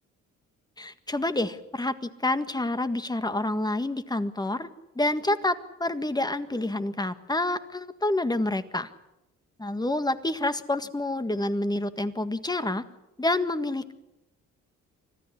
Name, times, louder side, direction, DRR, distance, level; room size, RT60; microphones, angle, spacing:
voice 1, 0.8-4.7 4.9-8.9 9.6-12.8 13.2-13.9, left 2 dB, 15° left, 11 dB, 1.7 m, -28 dB
25.5 x 15.5 x 9.9 m, 0.94 s
cardioid pair, 90°, 30 cm